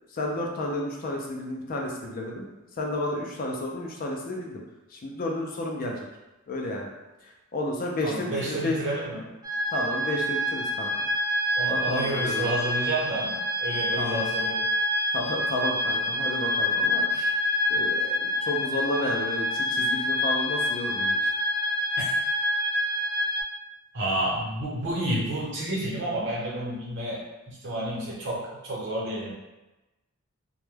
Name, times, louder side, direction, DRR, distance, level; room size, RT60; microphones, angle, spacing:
voice 1, 0.1-4.6 4.9-5.9 6.5-6.9 7.5-8.8 9.7-10.9 11.7-12.6 14.0-14.3 15.1-17.2 17.7-21.2, left 1 dB, 40° left, 0 dB, 0.4 m, -31 dB
voice 2, 8.0-9.3 11.6-14.7 17.1-17.3 22.0-22.1 23.9-29.3, right 1 dB, 55° right, -6 dB, 0.8 m, -30 dB
sound 1, 9.4-23.4, left 1 dB, 20° right, 0.4 m, -27 dB
2.2 x 2.1 x 3.2 m, 1.0 s
head